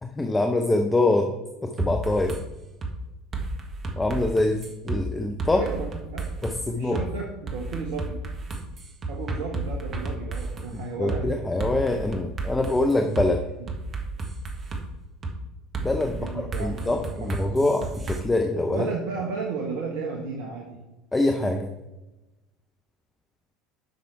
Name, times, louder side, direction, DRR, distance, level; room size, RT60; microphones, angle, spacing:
voice 1, 0.0-1.4 1.6-2.4 4.0-5.7 6.4-7.0 10.7-13.4 15.8-18.9 21.1-21.7, left 2 dB, 15° left, 4 dB, 0.7 m, -24 dB
sound 1, 1.8-2.4 2.8-2.9 3.3-5.0 5.4-6.6 6.9-7.1 7.5-10.7 11.1-11.2 11.6-13.3 13.7-14.8 15.2-15.4 15.7-18.2, right 3 dB, 35° right, 1.5 m, -32 dB
voice 2, 5.5-6.3 6.7-8.2 9.1-11.3 16.2-17.3 17.5-17.7 18.7-20.8, right 4 dB, 60° right, 0 dB, 1.2 m, -33 dB
9.3 x 6.0 x 4.7 m, 1.0 s
figure-of-eight pair, 70°, 0 cm